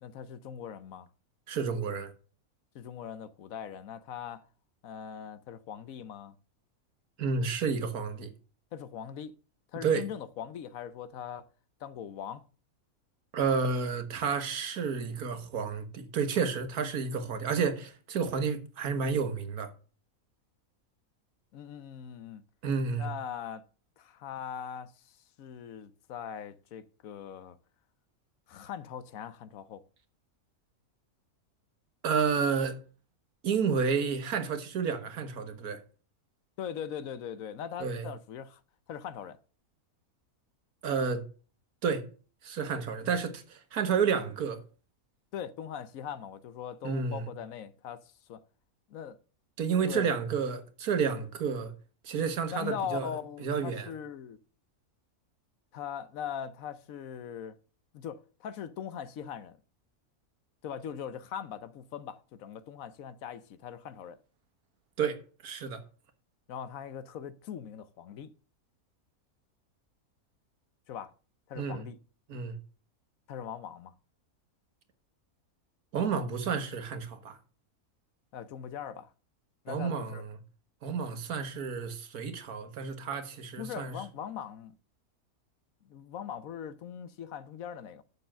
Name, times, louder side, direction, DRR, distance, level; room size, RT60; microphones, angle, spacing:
voice 1, 0.0-1.1 2.7-4.5 4.8-6.3 8.7-9.3 9.7-11.5 11.8-12.4 19.0-19.2 21.5-22.4 23.0-23.7 24.0-27.6 28.5-29.8 36.6-38.6 38.9-39.4 45.3-48.4 48.9-49.2 49.9-50.1 52.5-54.4 55.7-57.6 57.9-59.6 60.6-64.2 66.5-68.3 70.9-71.1 71.5-72.0 73.3-73.9 78.3-79.1 79.6-80.2 83.6-84.7 85.8-88.0, left 8 dB, 70° left, 1.1 m, -41 dB
voice 2, 1.5-2.1 7.2-8.3 9.8-10.0 13.3-19.7 22.6-23.1 32.0-32.8 33.4-35.8 37.8-38.1 40.8-41.2 41.8-42.1 42.4-44.6 46.8-47.3 49.6-51.7 52.0-53.1 53.4-53.9 65.0-65.8 71.6-71.8 72.3-72.6 75.9-77.4 79.7-80.3 80.8-84.0, right 6 dB, 80° right, 1.7 m, -30 dB
7.0 x 6.6 x 7.3 m
omnidirectional pair, 1.6 m